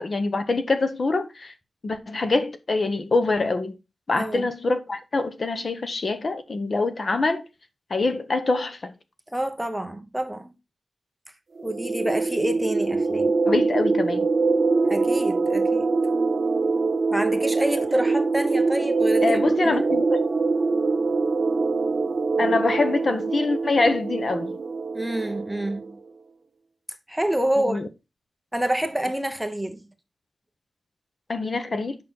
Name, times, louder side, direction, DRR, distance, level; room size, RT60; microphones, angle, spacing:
voice 1, 0.0-1.5 1.8-3.7 4.1-7.4 7.9-8.9 13.5-14.3 19.2-20.2 22.4-24.6 27.7-27.9 31.3-32.0, left 3 dB, 40° left, 1.0 m, -24 dB
voice 2, 4.1-4.5 9.3-10.5 11.6-13.4 14.8-15.9 17.1-19.4 19.6-19.9 24.9-26.0 27.1-27.8 28.5-29.8, right 1 dB, 5° right, 1.0 m, -27 dB
sound 1, 11.6-25.9, right 3 dB, 40° right, 1.0 m, -24 dB
8.7 x 6.1 x 3.8 m
wide cardioid pair, 160°, 0 cm